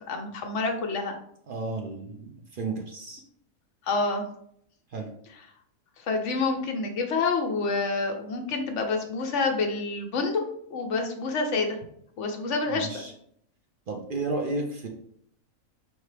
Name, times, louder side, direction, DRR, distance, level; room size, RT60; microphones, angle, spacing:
voice 1, 0.1-1.1 3.9-4.2 6.0-10.4 10.7-11.8 12.2-13.0, left 3 dB, 60° left, 4 dB, 1.0 m, -28 dB
voice 2, 1.5-3.2 4.9-5.1 12.7-13.1 13.9-14.9, right 3 dB, 60° right, 1 dB, 0.6 m, -32 dB
4.5 x 2.8 x 3.2 m, 0.68 s
omnidirectional pair, 1.5 m